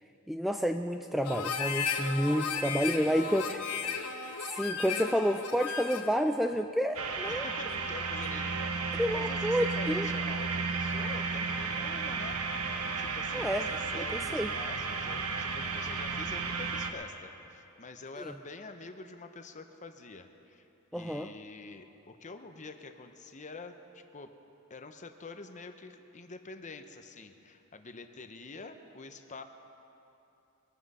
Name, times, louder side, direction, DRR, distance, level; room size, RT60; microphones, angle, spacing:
voice 1, 0.3-3.6 4.4-7.5 9.0-10.1 13.3-13.7 13.9-14.5 18.2-18.3 20.9-21.3, equal, ahead, 6 dB, 0.3 m, -30 dB
Harmonica, 1.2-6.2, left 6 dB, 80° left, 1.0 m, -35 dB
voice 2, 2.4-4.0 7.3-20.7 20.9-24.3 24.7-29.4, left 3 dB, 35° left, 7 dB, 0.8 m, -47 dB
sound 1, 6.9-16.9, right 4 dB, 80° right, 1.1 m, -33 dB
23.0 x 9.8 x 5.5 m, 2.9 s
head